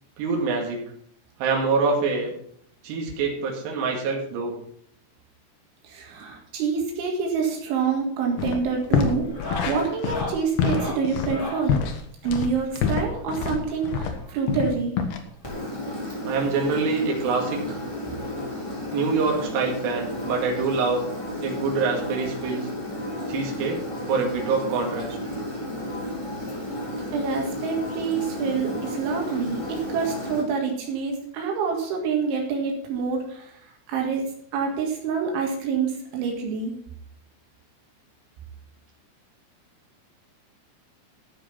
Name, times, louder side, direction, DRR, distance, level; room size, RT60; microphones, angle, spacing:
voice 1, 0.2-0.8 1.4-2.3 2.8-4.6 16.2-17.8 18.9-21.0 21.4-22.7 23.3-23.8 24.1-25.2, right 4 dB, 70° right, 0 dB, 4.1 m, -25 dB
voice 2, 5.8-9.3 9.7-11.8 12.2-14.9 27.1-33.5 33.9-36.7, right 5 dB, 85° right, 0 dB, 4.2 m, -27 dB
sound 1, 7.7-8.0 8.3-8.6 9.2-11.7 13.0-14.4 15.5-15.6 15.8-15.9 16.3-16.4 17.7-17.8 19.2-19.3, left 2 dB, 25° left, 1.0 m, -37 dB
sound 2, 8.4-8.6 8.9-14.2 14.5-15.2, left 6 dB, 65° left, 2.9 m, -26 dB
Engine, 15.4-30.4, left 1 dB, 5° left, 3.9 m, -33 dB
13.0 x 6.9 x 5.7 m, 0.65 s
omnidirectional pair, 5.3 m